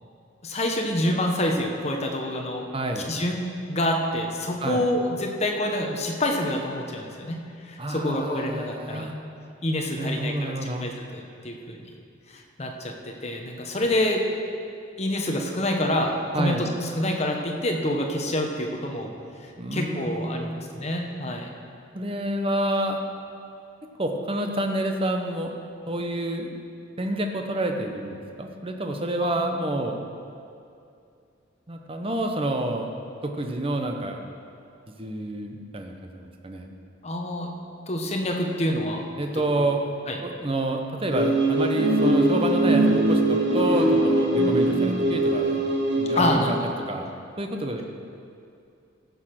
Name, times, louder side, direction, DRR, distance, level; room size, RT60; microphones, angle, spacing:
voice 1, 0.4-2.7 3.1-3.4 3.7-9.1 9.6-11.8 12.3-14.2 15.0-19.1 19.4-21.5 29.2-29.4 37.0-37.5 37.9-39.0 39.3-39.7 40.1-40.2 46.2-46.6, left 1 dB, 35° left, 2 dB, 1.2 m, -27 dB
voice 2, 2.7-3.1 4.6-4.8 7.8-9.1 9.9-10.9 16.3-16.7 19.6-20.6 21.9-23.0 24.0-25.6 25.9-26.5 27.0-30.1 31.7-32.9 33.2-34.2 34.9-36.7 39.2-39.8 40.2-45.6 46.0-46.5 46.9-47.1 47.4-47.8, right 1 dB, 30° right, 3 dB, 0.9 m, -28 dB
sound 1, 41.1-46.3, right 1 dB, 60° right, 1.9 m, -21 dB
14.5 x 6.6 x 6.0 m, 2.5 s
head